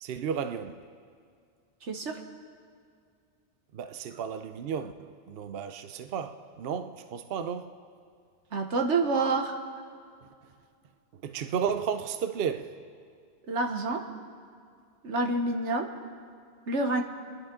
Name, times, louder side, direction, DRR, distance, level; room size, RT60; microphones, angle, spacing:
voice 1, 0.0-0.8 3.7-7.8 11.2-12.8, right 7 dB, 65° right, 0.8 m, -33 dB
voice 2, 1.9-2.2 8.5-9.6 13.5-14.0 15.0-15.9 16.7-17.0, right 3 dB, 85° right, 1.5 m, -27 dB
29.5 x 11.0 x 3.8 m
omnidirectional pair, 1.2 m